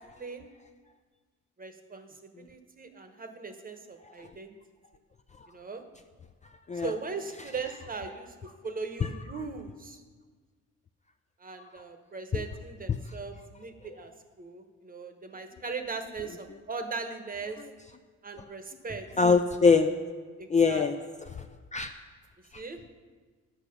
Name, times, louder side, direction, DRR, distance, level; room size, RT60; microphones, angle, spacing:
voice 1, 0.2-0.5 1.6-4.5 5.5-5.8 6.7-10.0 11.4-14.1 14.4-17.6 18.2-19.1 20.4-20.8 22.5-22.9, right 4 dB, 30° right, 7 dB, 1.0 m, -39 dB
voice 2, 19.2-19.9 20.5-21.0 21.7-21.9 22.5-22.6, left 5 dB, 25° left, 7 dB, 0.4 m, -22 dB
8.8 x 6.1 x 6.5 m, 1.4 s
cardioid pair, 90°, 30 cm